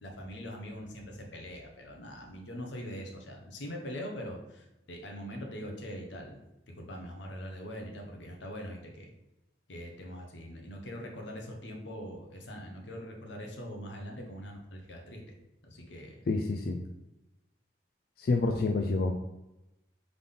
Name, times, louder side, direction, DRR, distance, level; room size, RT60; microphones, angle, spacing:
voice 1, 0.0-6.4 6.7-9.1 9.7-15.2 15.6-16.1, equal, 85° left, 1 dB, 0.9 m, -42 dB
voice 2, 16.3-16.8 18.2-19.1, left 3 dB, 55° left, 4 dB, 0.3 m, -28 dB
3.7 x 3.5 x 3.7 m, 0.93 s
head